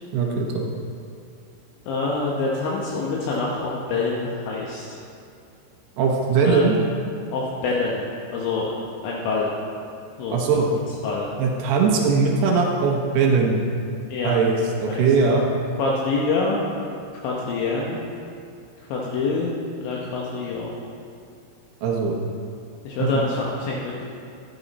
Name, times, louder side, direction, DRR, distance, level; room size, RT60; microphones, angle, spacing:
voice 1, 0.1-0.7 6.0-6.8 10.3-10.7 11.4-13.6 14.2-15.5 21.8-22.2 23.0-23.1, right 4 dB, 75° right, 0 dB, 2.5 m, -20 dB
voice 2, 1.9-5.0 6.4-6.7 7.3-8.0 8.3-8.7 9.0-9.5 10.2-10.4 11.0-11.3 14.1-14.4 14.9-15.1 15.8-16.6 17.1-18.0 18.9-19.5 19.8-20.7 22.8-24.0, left 3 dB, 75° left, -4 dB, 3.2 m, -26 dB
11.5 x 11.5 x 4.1 m, 2.5 s
omnidirectional pair, 5.9 m